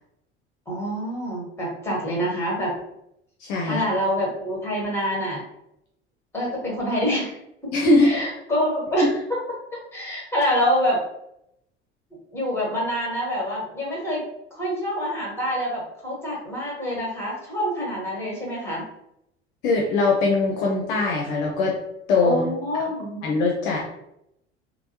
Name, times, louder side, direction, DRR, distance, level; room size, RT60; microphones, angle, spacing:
voice 1, 0.7-2.7 3.6-5.4 6.3-7.4 8.0-9.4 9.9-11.0 12.3-18.8 22.2-23.2, equal, 5° left, -4 dB, 1.3 m, -26 dB
voice 2, 3.4-3.8 7.7-8.2 9.0-9.1 19.6-21.8 22.1-22.4 23.2-23.8, left 3 dB, 50° left, -1 dB, 0.6 m, -21 dB
3.2 x 2.0 x 2.8 m, 0.80 s
figure-of-eight pair, 65°, 34 cm